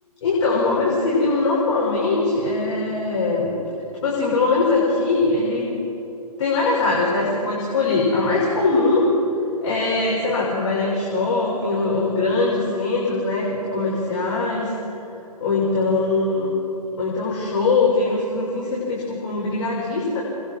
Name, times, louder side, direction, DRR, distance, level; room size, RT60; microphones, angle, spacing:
voice 1, 0.2-3.5 4.0-5.7 6.4-9.1 9.6-14.7 15.4-16.5 17.0-20.2, left 3 dB, 50° left, -5 dB, 6.6 m, -21 dB
28.5 x 22.0 x 4.8 m, 2.9 s
figure-of-eight pair, 135°, 20 cm